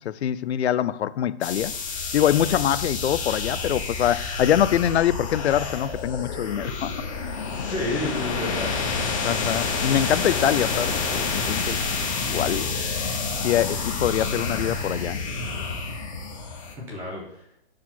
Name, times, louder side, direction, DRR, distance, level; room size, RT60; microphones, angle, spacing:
voice 1, 0.0-1.7 2.1-6.9 7.5-7.7 9.2-11.8 12.2-12.7 13.4-15.2, left 10 dB, 80° left, 0.5 m, -24 dB
sound 1, 1.4-16.7, left 4 dB, 30° left, 1.0 m, -28 dB
voice 2, 7.4-8.7 16.8-17.4, left 1 dB, 5° right, 0.7 m, -31 dB
5.9 x 4.7 x 3.8 m
hypercardioid pair, 165°, 33 cm